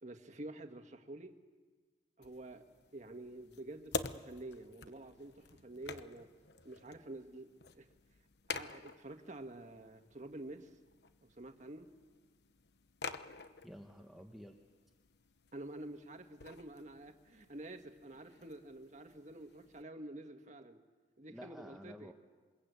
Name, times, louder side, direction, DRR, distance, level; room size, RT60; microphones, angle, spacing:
voice 1, 0.0-1.4 2.2-2.6 2.9-5.3 5.6-6.3 6.6-7.9 8.5-10.7 11.2-11.9 15.5-20.8 21.2-22.1, right 1 dB, 40° right, 6 dB, 1.7 m, -49 dB
sound 1, 2.2-19.8, left 4 dB, 70° left, 1.0 m, -49 dB
voice 2, 13.6-14.6 21.3-22.1, equal, ahead, 2 dB, 1.2 m, -51 dB
27.5 x 23.5 x 8.3 m, 1.4 s
head